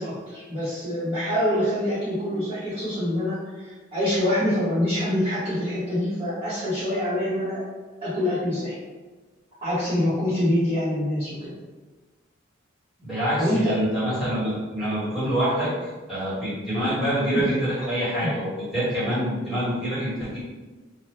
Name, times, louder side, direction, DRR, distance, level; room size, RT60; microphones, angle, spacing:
voice 1, 0.0-7.6 8.0-8.7 9.6-11.5 13.4-13.7 17.3-17.4, left 1 dB, 25° right, -14 dB, 1.0 m, -25 dB
voice 2, 13.0-15.7 16.1-20.4, equal, ahead, -13 dB, 1.4 m, -26 dB
2.7 x 2.2 x 3.2 m, 1.3 s
head